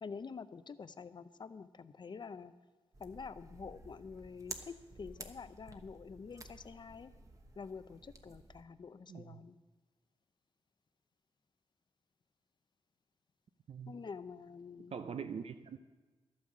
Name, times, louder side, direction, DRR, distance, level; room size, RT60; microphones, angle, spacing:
voice 1, 0.0-2.5 3.0-7.1 7.6-9.6 13.9-14.9, left 5 dB, 45° left, 13 dB, 0.5 m, -47 dB
sound 1, 2.9-8.6, right 2 dB, 30° right, 1.0 m, -52 dB
voice 2, 9.1-9.4 13.7-14.0 14.9-15.8, right 6 dB, 70° right, 9 dB, 0.6 m, -43 dB
12.0 x 8.7 x 7.3 m, 1.3 s
wide cardioid pair, 105°, 10 cm